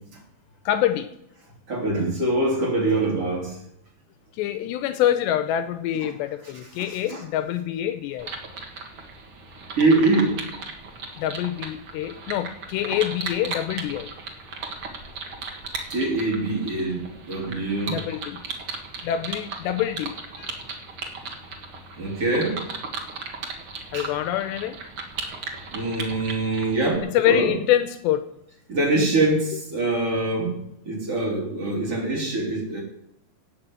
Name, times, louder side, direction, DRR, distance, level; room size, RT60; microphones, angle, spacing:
voice 1, 0.7-1.1 4.3-8.3 11.2-14.1 17.9-18.4 19.0-20.6 23.9-24.8 27.0-28.2, left 11 dB, 80° left, 10 dB, 2.7 m, -25 dB
voice 2, 1.7-3.6 6.4-6.5 6.8-7.2 9.7-10.4 15.9-18.0 22.0-22.6 23.9-24.1 25.7-27.5 28.7-30.6 30.8-32.8, right 2 dB, 35° right, -2 dB, 3.8 m, -24 dB
sound 1, 8.2-27.0, right 4 dB, 65° right, 1.3 m, -36 dB
18.0 x 6.8 x 7.7 m, 0.77 s
omnidirectional pair, 5.2 m